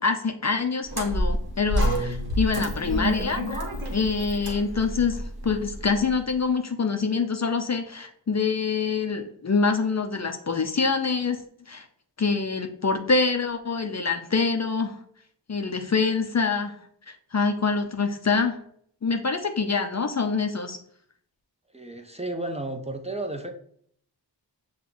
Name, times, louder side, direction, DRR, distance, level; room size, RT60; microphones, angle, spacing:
voice 1, 0.0-3.6 3.9-11.9 12.2-15.0 15.5-16.8 17.1-18.6 19.0-20.8, left 4 dB, 40° left, 6 dB, 0.5 m, -25 dB
sound 1, 0.9-6.1, equal, 55° right, 1.1 m, -28 dB
voice 2, 21.7-23.5, right 2 dB, 15° right, 4 dB, 0.6 m, -32 dB
6.1 x 2.3 x 3.8 m, 0.64 s
cardioid pair, 45°, 44 cm